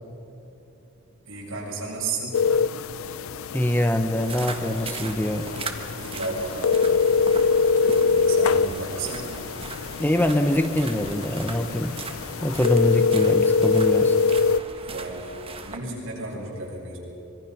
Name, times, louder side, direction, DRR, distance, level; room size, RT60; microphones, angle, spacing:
voice 1, 1.3-2.5 6.0-9.4 14.8-17.0, right 3 dB, 70° right, -4 dB, 7.4 m, -34 dB
sound 1, 2.3-14.6, left 5 dB, 70° left, 0.5 m, -24 dB
voice 2, 3.5-5.5 10.0-12.0 12.4-14.2, left 1 dB, 10° left, 7 dB, 0.7 m, -24 dB
sound 2, 4.2-15.8, right 4 dB, 25° right, 1.3 m, -39 dB
24.5 x 22.0 x 5.9 m, 3.0 s
head